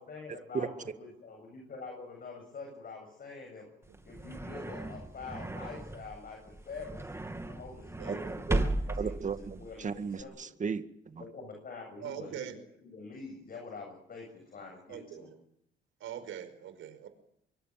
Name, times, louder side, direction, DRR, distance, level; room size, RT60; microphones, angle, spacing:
voice 1, 0.0-3.7 4.0-8.7 9.0-9.2 9.6-10.3 11.3-15.3, left 4 dB, 45° left, 2 dB, 7.9 m, -46 dB
sound 1, 3.8-10.2, right 1 dB, 15° right, 2.8 m, -36 dB
voice 2, 9.0-11.2, right 5 dB, 40° right, 10 dB, 2.0 m, -35 dB
voice 3, 12.0-12.6 14.9-15.4 16.0-17.1, right 9 dB, 80° right, 10 dB, 5.4 m, -42 dB
25.0 x 23.5 x 7.7 m, 0.75 s
cardioid pair, 90°, 20 cm